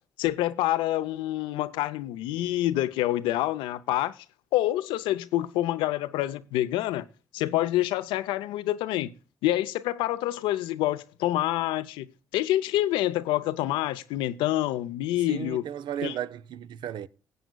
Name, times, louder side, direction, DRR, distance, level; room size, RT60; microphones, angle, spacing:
voice 1, 0.2-4.1 4.5-7.1 7.3-9.1 9.4-15.6 16.0-16.2, left 14 dB, 75° left, 0.6 m, -27 dB
voice 2, 15.3-17.1, right 10 dB, 60° right, 0.6 m, -34 dB
19.0 x 7.9 x 2.3 m
hypercardioid pair, 45°, 9 cm